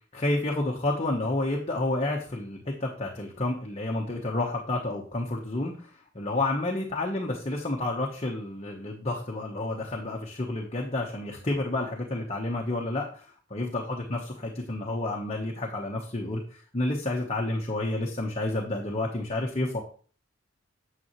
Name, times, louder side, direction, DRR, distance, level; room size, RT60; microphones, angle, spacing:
voice 1, 0.1-5.9 6.1-19.8, left 2 dB, 30° left, -1 dB, 1.1 m, -30 dB
9.4 x 6.8 x 3.1 m, 0.42 s
head